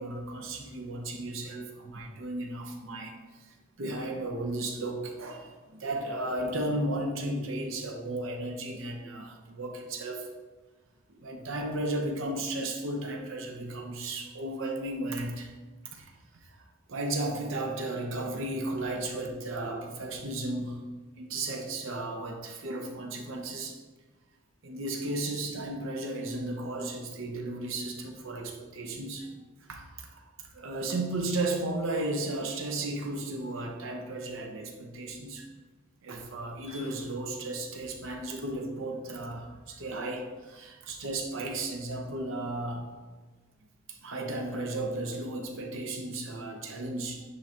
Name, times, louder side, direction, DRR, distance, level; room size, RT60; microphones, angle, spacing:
voice 1, 0.0-3.1 3.8-10.3 11.1-15.5 15.9-16.1 16.5-16.6 16.9-20.8 21.2-23.8 24.6-29.3 29.7-30.3 30.5-35.5 36.0-42.9 43.9-47.2, right 2 dB, 60° right, 3 dB, 0.8 m, -34 dB
9.7 x 3.8 x 2.9 m, 1.3 s
head